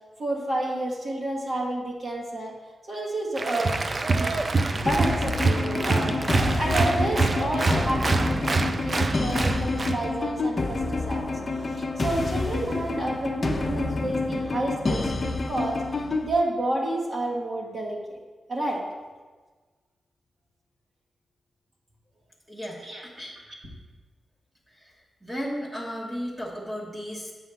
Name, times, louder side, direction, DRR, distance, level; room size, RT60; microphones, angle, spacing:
voice 1, 0.2-2.5 2.9-3.7 4.1-4.3 4.7-11.3 11.6-15.7 16.2-18.0 18.5-18.8 22.8-23.0, right 1 dB, 55° right, -3 dB, 1.6 m, -30 dB
Applause, 3.4-10.0, right 3 dB, 35° right, 0.4 m, -25 dB
sound 1, 4.9-16.3, left 3 dB, 35° left, 0.6 m, -28 dB
voice 2, 22.5-23.4 24.7-24.9 25.2-27.3, equal, 20° right, -5 dB, 1.2 m, -35 dB
7.9 x 5.5 x 3.5 m, 1.3 s
wide cardioid pair, 105°, 0 cm